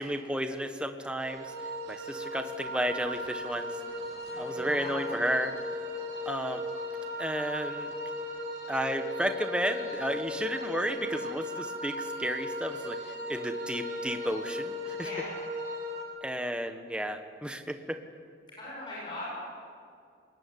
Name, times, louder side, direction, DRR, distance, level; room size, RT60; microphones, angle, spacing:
voice 1, 0.0-1.5 1.9-3.8 4.4-5.7 6.2-6.6 7.2-7.9 8.7-15.1 16.2-18.0, equal, 5° right, 6 dB, 1.4 m, -33 dB
sound 1, 1.2-16.0, left 1 dB, 60° right, 6.5 m, -37 dB
voice 2, 4.3-5.1 15.0-15.3 18.6-19.3, left 2 dB, 25° left, -6 dB, 8.0 m, -40 dB
24.5 x 21.5 x 9.6 m, 2.3 s
head